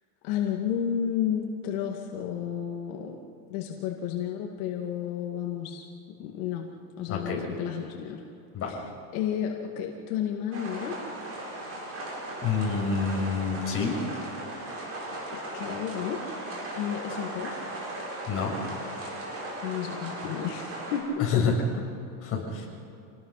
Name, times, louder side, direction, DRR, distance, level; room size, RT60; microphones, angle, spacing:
voice 1, 0.2-3.2 3.5-5.8 6.2-6.7 7.0-8.2 9.1-11.0 15.1-17.6 19.6-21.6, left 8 dB, 75° left, 1 dB, 2.2 m, -32 dB
voice 2, 7.1-7.4 8.5-8.7 12.4-14.0 18.3-18.5 21.2-21.5 22.2-22.7, left 5 dB, 30° left, -2 dB, 6.5 m, -28 dB
sound 1, 10.5-21.0, right 1 dB, 30° right, 7.0 m, -37 dB
27.5 x 19.5 x 5.8 m, 2.6 s
cardioid pair, 155°, 44 cm